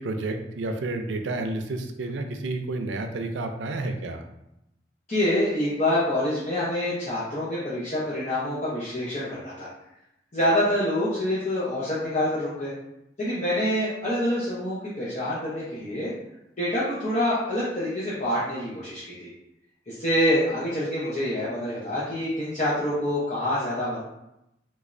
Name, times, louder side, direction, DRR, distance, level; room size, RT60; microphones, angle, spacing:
voice 1, 0.0-4.2, right 2 dB, 85° right, 6 dB, 0.4 m, -30 dB
voice 2, 5.1-9.7 10.3-12.7 13.2-16.1 16.6-19.3 19.9-24.0, left 1 dB, 40° left, -8 dB, 0.7 m, -26 dB
3.3 x 3.0 x 2.5 m, 0.85 s
head